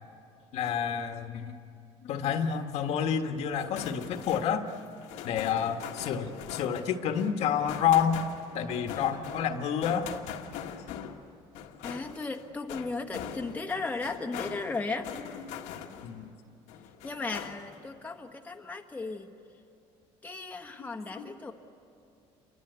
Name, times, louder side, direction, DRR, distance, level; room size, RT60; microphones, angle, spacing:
voice 1, 0.5-1.6 2.0-4.7 5.2-8.2 8.5-10.1 15.3-15.4 16.0-16.3 20.8-21.5, left 8 dB, 65° left, 5 dB, 1.7 m, -29 dB
sound 1, 3.5-16.3 16.7-17.9, left 9 dB, 85° left, 1.8 m, -42 dB
voice 2, 11.8-15.1 17.0-19.3 20.2-21.5, left 3 dB, 15° left, 3 dB, 1.5 m, -36 dB
28.5 x 24.5 x 8.2 m, 2.5 s
cardioid pair, 120°, 12 cm